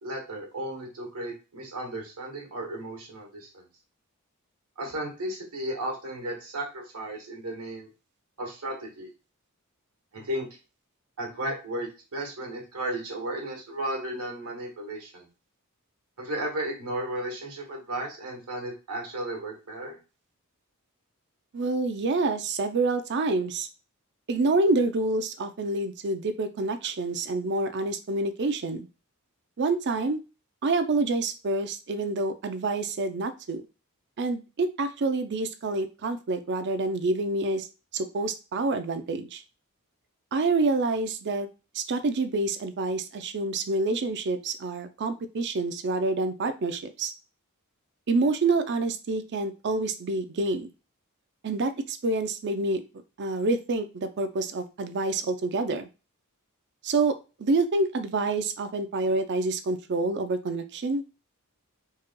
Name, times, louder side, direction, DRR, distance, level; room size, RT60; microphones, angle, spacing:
voice 1, 0.0-3.6 4.8-7.9 8.4-9.1 10.1-10.5 11.2-15.3 16.2-20.0, right 1 dB, 85° right, 1 dB, 1.5 m, -34 dB
voice 2, 21.5-23.7 24.3-28.9 29.6-30.2 30.6-33.6 34.2-37.7 37.9-39.4 40.3-41.5 41.7-47.1 48.1-50.7 51.4-52.8 53.2-55.9 56.8-61.0, right 3 dB, 50° right, 9 dB, 0.5 m, -27 dB
4.6 x 3.1 x 2.2 m, 0.30 s
head